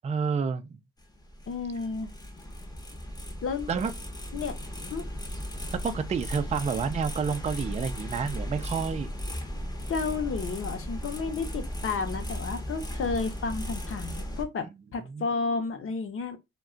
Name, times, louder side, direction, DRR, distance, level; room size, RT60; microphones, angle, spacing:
voice 1, 0.0-0.7 3.7-3.9 5.8-9.1 15.1-15.3, right 6 dB, 25° right, 0.4 m, -29 dB
sound 1, 1.0-14.4, equal, 15° left, 0.7 m, -36 dB
voice 2, 1.5-2.1 3.4-3.7 4.3-4.5 4.9-5.1 9.9-16.4, left 4 dB, 45° left, 0.8 m, -32 dB
2.3 x 2.2 x 3.7 m
cardioid pair, 90°, 30 cm